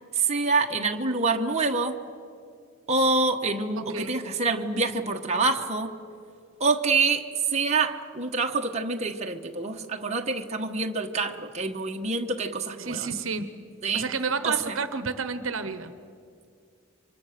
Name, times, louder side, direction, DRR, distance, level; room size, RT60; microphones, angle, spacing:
voice 1, 0.1-2.0 2.9-5.9 6.6-13.1 13.8-14.1 14.4-14.8, right 3 dB, 30° right, 2 dB, 1.3 m, -26 dB
voice 2, 3.8-4.1 12.8-13.5 13.9-15.9, right 4 dB, 65° right, 11 dB, 1.1 m, -30 dB
29.5 x 25.0 x 6.7 m, 2.4 s
head